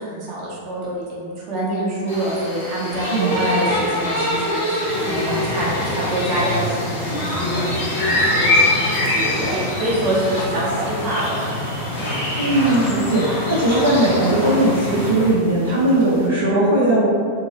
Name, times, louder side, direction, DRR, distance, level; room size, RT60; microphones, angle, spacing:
voice 1, 0.0-8.6 9.0-11.5 12.0-12.1, right 1 dB, 40° right, -6 dB, 0.8 m, -26 dB
sound 1, 2.1-16.3, left 1 dB, 70° left, 1.1 m, -28 dB
voice 2, 3.1-3.6 12.4-17.1, right 1 dB, 70° right, -8 dB, 0.6 m, -18 dB
sound 2, 4.9-15.3, left 1 dB, 55° left, 0.7 m, -24 dB
2.8 x 2.8 x 2.9 m, 2.1 s
figure-of-eight pair, 90°, 0 cm